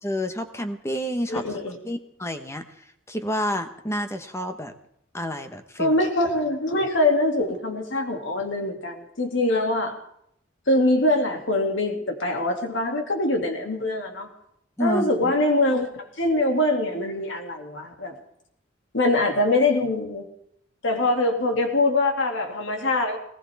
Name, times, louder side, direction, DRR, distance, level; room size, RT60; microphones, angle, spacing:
voice 1, 0.0-1.4 1.8-2.6 3.1-4.7 5.1-6.0 14.8-15.3, equal, 15° left, 7 dB, 1.1 m, -29 dB
voice 2, 1.3-1.8 5.8-9.9 10.7-14.3 14.8-15.9 16.2-18.2 18.9-20.3 20.8-23.2, left 2 dB, 70° left, 3 dB, 2.5 m, -23 dB
19.5 x 19.5 x 3.5 m, 0.72 s
head